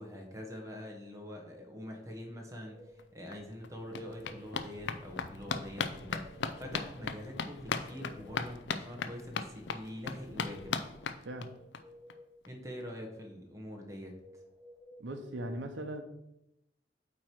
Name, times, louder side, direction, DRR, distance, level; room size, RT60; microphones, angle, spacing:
voice 1, 0.0-10.7 12.5-14.4, equal, 20° right, 1 dB, 1.1 m, -45 dB
sound 1, 2.3-3.1 3.6-4.5 6.1-7.1 7.4-8.5 9.9-11.0 11.4-12.4 14.0-15.0, equal, 25° left, 1.4 m, -57 dB
sound 2, 3.0-3.1 3.3-11.8 12.1-12.2 12.4-12.5 12.8-12.9, left 5 dB, 70° left, 0.4 m, -38 dB
voice 2, 15.0-16.0, right 1 dB, 85° right, 6 dB, 0.8 m, -39 dB
8.5 x 3.1 x 4.5 m, 0.84 s
head